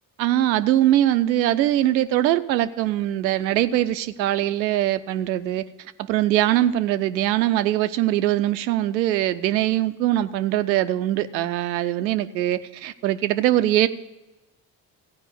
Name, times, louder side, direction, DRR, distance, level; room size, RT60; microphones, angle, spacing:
voice 1, 0.2-5.6 6.1-13.9, right 13 dB, 90° right, 12 dB, 0.6 m, -22 dB
14.5 x 5.0 x 8.2 m, 1.0 s
hypercardioid pair, 50°, 50 cm